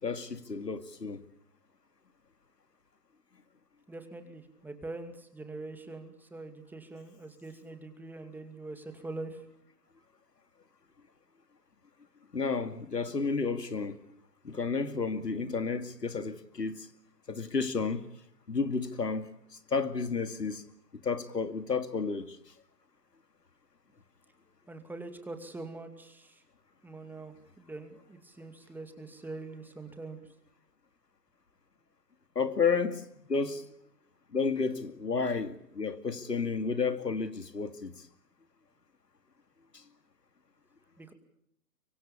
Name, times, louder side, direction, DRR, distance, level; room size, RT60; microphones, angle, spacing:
voice 1, 0.0-1.2 12.3-14.0 14.4-16.9 17.3-18.1 18.5-19.3 19.7-20.6 21.0-22.4 32.4-33.0 33.3-33.7 34.3-37.9 39.7-39.8, left 5 dB, 90° left, 2.5 m, -31 dB
voice 2, 3.9-9.5 24.7-26.4 26.8-30.2 41.0-41.1, right 2 dB, 5° right, 2.4 m, -43 dB
24.5 x 24.5 x 8.6 m
figure-of-eight pair, 130°, 47 cm